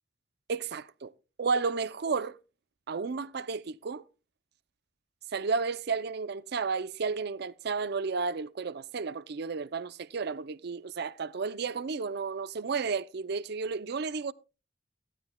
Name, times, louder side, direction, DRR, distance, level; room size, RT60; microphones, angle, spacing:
voice 1, 0.5-1.1 1.4-2.3 2.9-4.0 5.3-14.3, right 4 dB, 60° right, 0.5 m, -32 dB
15.0 x 13.0 x 2.2 m
head